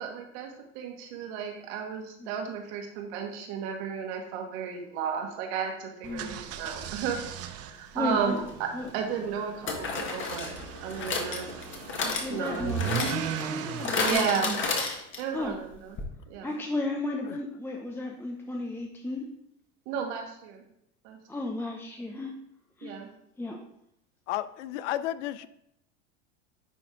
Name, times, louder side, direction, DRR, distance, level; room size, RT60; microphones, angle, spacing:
voice 1, 0.0-7.2 7.6-8.7 8.9-10.5 10.8-11.5 12.0-12.7 14.0-14.6 15.2-16.0 16.3-16.6 19.9-20.6 21.0-21.2 22.8-23.1, right 7 dB, 70° right, 2 dB, 2.0 m, -33 dB
voice 2, 6.0-6.4 7.9-8.4 8.7-8.9 12.2-14.6 15.3-15.6 16.4-19.3 21.3-22.3 22.8-23.0 23.4-23.6, left 2 dB, 5° left, 1 dB, 0.7 m, -34 dB
sound 1, 6.0-14.1, right 10 dB, 45° right, 0.8 m, -38 dB
sound 2, 8.4-8.5 9.7-15.4 15.7-15.8 16.0-16.1, left 4 dB, 35° left, 1.6 m, -32 dB
voice 3, 24.3-25.5, left 13 dB, 85° left, 15 dB, 0.6 m, -32 dB
10.5 x 4.3 x 3.9 m, 0.76 s
supercardioid pair, 110°, 35 cm